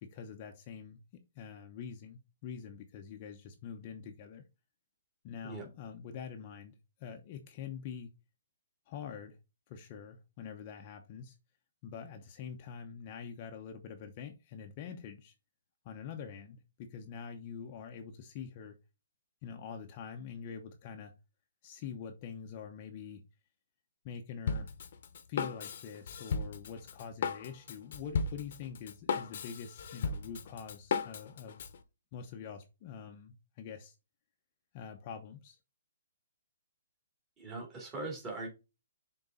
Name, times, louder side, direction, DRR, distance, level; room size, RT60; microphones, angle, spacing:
voice 1, 0.0-1.0 1.4-4.4 5.2-6.7 7.0-8.1 8.9-9.4 9.7-11.3 11.8-15.3 15.8-18.8 19.4-21.1 21.6-23.2 24.0-24.7 25.3-31.6 32.1-34.0 34.7-35.6, left 7 dB, 30° left, 0.8 m, -45 dB
Drum kit, 24.5-31.8, left 5 dB, 50° left, 1.0 m, -36 dB
voice 2, 37.4-38.5, right 3 dB, 15° right, 2.8 m, -40 dB
6.6 x 3.9 x 3.8 m
hypercardioid pair, 160°, 0 cm